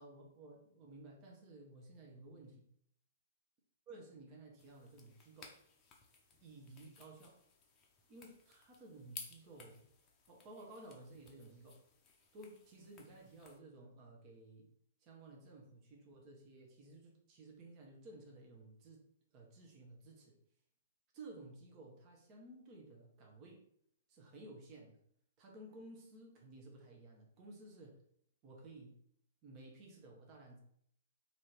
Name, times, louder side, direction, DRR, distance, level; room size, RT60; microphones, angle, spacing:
voice 1, 0.0-2.6 3.9-5.5 6.4-7.4 8.1-9.8 10.3-11.8 12.3-14.7 15.0-19.0 19.3-20.3 21.1-23.6 24.1-25.0 25.4-28.0 28.4-28.9 29.4-30.6, right 2 dB, 30° right, -1 dB, 1.0 m, -55 dB
sound 1, 4.6-13.6, left 5 dB, 25° left, 0.7 m, -58 dB
3.0 x 2.8 x 4.4 m, 0.67 s
figure-of-eight pair, 115°, 0 cm